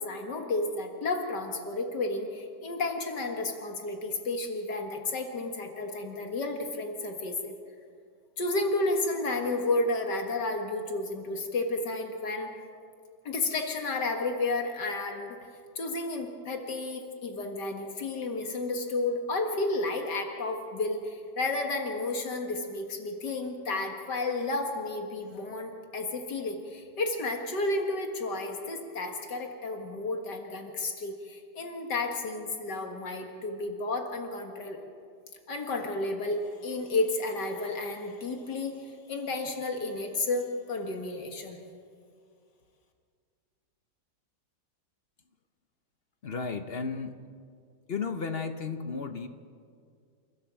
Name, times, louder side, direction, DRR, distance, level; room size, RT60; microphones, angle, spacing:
voice 1, 0.0-7.5 8.4-12.5 13.3-15.4 15.8-34.8 35.5-41.6, left 2 dB, 70° left, 4 dB, 2.3 m, -32 dB
voice 2, 46.2-47.2 47.9-49.3, left 5 dB, 45° left, 8 dB, 0.9 m, -33 dB
28.5 x 12.5 x 7.6 m, 2.2 s
omnidirectional pair, 2.0 m